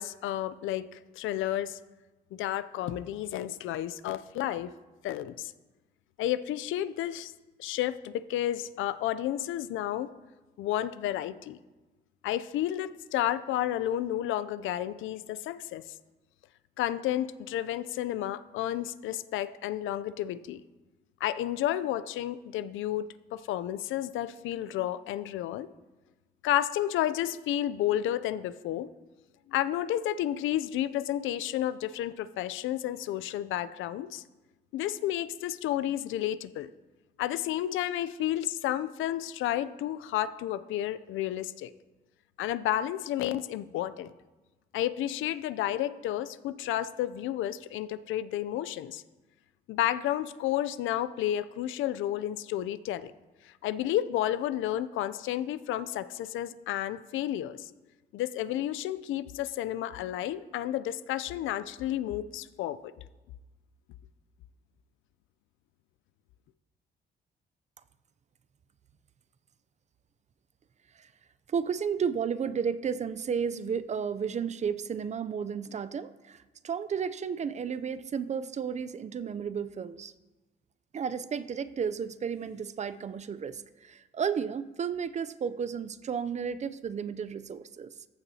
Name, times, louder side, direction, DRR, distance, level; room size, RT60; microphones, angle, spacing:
voice 1, 0.0-1.8 2.3-4.7 5.0-5.5 6.2-7.3 7.6-10.1 10.6-11.6 12.2-15.8 16.8-20.6 21.2-25.7 26.4-28.9 29.5-34.2 34.7-36.7 37.2-41.7 42.4-44.1 44.7-49.0 49.7-53.1 53.6-57.7 58.1-62.9, left 12 dB, 80° left, 15 dB, 0.4 m, -31 dB
voice 2, 71.5-80.1 80.9-87.9, right 7 dB, 35° right, 14 dB, 0.4 m, -33 dB
14.5 x 6.9 x 2.8 m, 1.2 s
cardioid pair, 90°, 20 cm